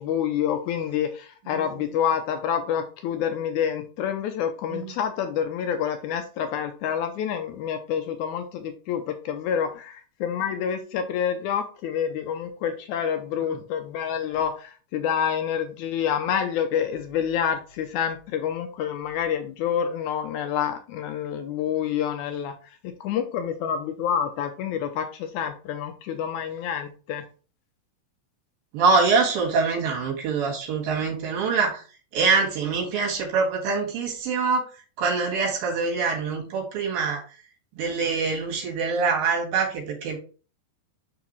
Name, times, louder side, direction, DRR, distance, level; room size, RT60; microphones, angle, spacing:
voice 1, 0.0-22.5 22.8-27.2, left 8 dB, 80° left, 7 dB, 1.8 m, -28 dB
voice 2, 1.5-1.9 4.7-4.9 13.5-13.6 28.7-31.8 32.1-34.7 35.0-37.2 37.8-40.2, right 4 dB, 90° right, 0 dB, 3.8 m, -24 dB
9.8 x 3.6 x 3.0 m, 0.37 s
omnidirectional pair, 3.9 m